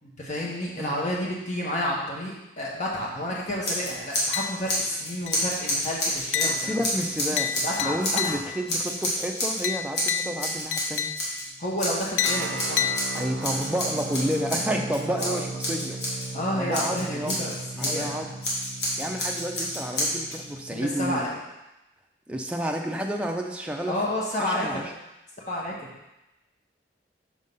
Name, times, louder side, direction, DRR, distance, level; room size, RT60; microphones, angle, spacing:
voice 1, 0.0-6.8 7.6-8.0 8.2-8.4 11.6-13.0 15.1-15.4 16.3-18.2 20.7-21.4 23.9-24.9 25.5-25.9, left 1 dB, 40° left, -4 dB, 1.5 m, -30 dB
Scissors, 3.6-4.4 4.7-8.3 8.7-9.6 9.9-11.4 11.8-16.3 16.7-18.1 18.4-20.4, left 1 dB, 70° left, 2.0 m, -29 dB
sound 1, 4.3-4.9 5.3-5.7 6.3-8.7 9.6-11.5 12.2-13.6, left 8 dB, 90° left, 0.3 m, -31 dB
voice 2, 6.4-7.5 7.8-11.1 13.1-16.0 16.5-17.5 17.8-18.3 19.0-21.3 22.3-24.0 24.4-24.8, equal, 5° right, 1 dB, 0.5 m, -30 dB
sound 2, 12.2-21.1, right 3 dB, 75° right, 0.4 m, -37 dB
6.4 x 4.0 x 5.4 m, 0.96 s
head